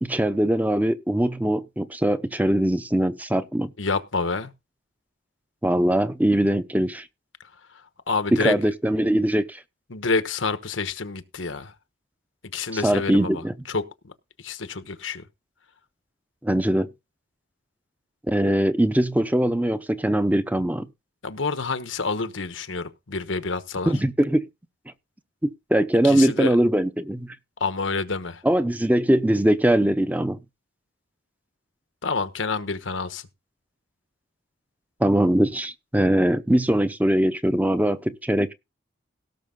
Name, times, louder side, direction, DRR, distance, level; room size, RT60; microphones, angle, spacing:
voice 1, 0.0-3.7 5.6-7.0 8.3-9.6 12.8-13.5 16.4-16.9 18.3-20.9 23.9-24.4 25.4-27.3 28.4-30.4 35.0-38.5, right 1 dB, 10° right, 0.8 m, -21 dB
voice 2, 3.8-4.5 7.7-8.6 9.9-11.7 12.4-14.1 14.4-15.3 21.2-23.9 26.0-26.6 27.6-28.4 32.0-33.3, left 4 dB, 85° left, 1.2 m, -28 dB
17.5 x 6.4 x 3.8 m
head